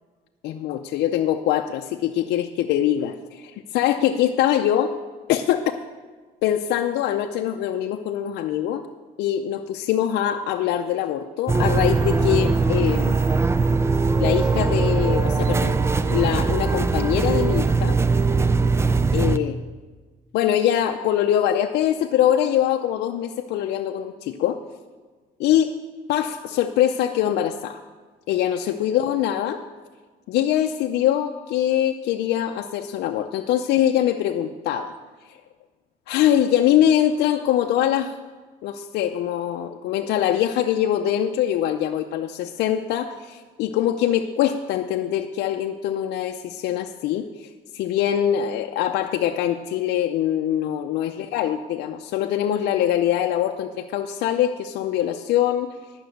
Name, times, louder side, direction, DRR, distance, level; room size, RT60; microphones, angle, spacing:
voice 1, 0.4-4.9 5.3-5.7 6.4-8.8 9.2-13.2 14.2-15.8 16.1-18.0 19.1-19.6 20.3-24.6 25.4-25.7 26.1-27.8 28.3-29.6 30.3-35.0 36.1-38.1 38.6-55.7, left 11 dB, 80° left, 4 dB, 0.5 m, -23 dB
sound 1, 11.5-19.4, right 4 dB, 15° right, 0.4 m, -21 dB
11.0 x 6.1 x 7.8 m, 1.4 s
cardioid pair, 110°, 17 cm